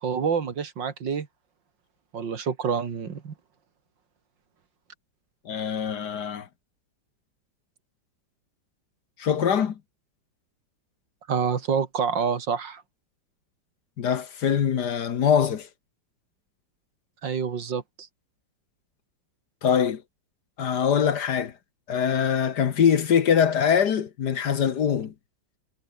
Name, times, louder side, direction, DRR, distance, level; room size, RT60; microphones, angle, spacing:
voice 1, 0.0-1.3 2.1-3.3 11.3-12.8 17.2-18.1, right 6 dB, 70° right, 2.6 m, -27 dB
voice 2, 5.5-6.5 9.2-9.8 14.0-15.7 19.6-20.0 20.6-21.5 21.9-25.1, left 7 dB, 60° left, 1.8 m, -23 dB
omnidirectional pair, 2.1 m